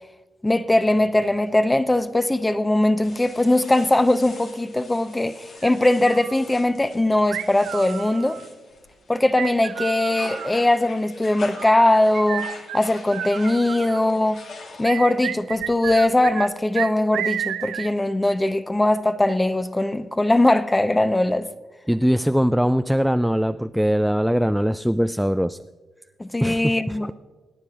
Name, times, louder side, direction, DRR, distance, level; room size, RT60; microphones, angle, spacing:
voice 1, 0.4-8.4 9.1-12.5 12.7-14.4 14.8-21.5 26.2-27.1, left 1 dB, 20° left, 0.8 m, -20 dB
sound 1, 3.0-9.2 9.6-15.2, left 3 dB, 70° left, 1.5 m, -43 dB
sound 2, 5.6-6.4 7.3-8.5 9.4-10.6 11.6-14.0 14.8-16.5 16.7-17.9, right 11 dB, 85° right, 0.4 m, -31 dB
voice 2, 21.9-25.6 26.4-27.1, equal, ahead, 0.3 m, -21 dB
26.0 x 9.9 x 2.5 m
supercardioid pair, 50°, 0 cm